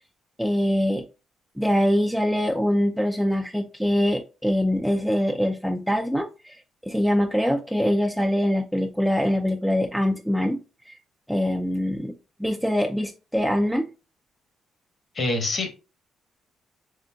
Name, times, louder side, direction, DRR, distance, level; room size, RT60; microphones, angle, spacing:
voice 1, 0.4-1.0 1.6-10.6 10.9-11.0 11.3-12.1 12.4-13.9, equal, ahead, 4 dB, 0.4 m, -23 dB
voice 2, 15.1-15.7, left 2 dB, 45° left, 5 dB, 1.1 m, -25 dB
3.9 x 3.5 x 2.2 m, 0.31 s
cardioid pair, 90°, 0 cm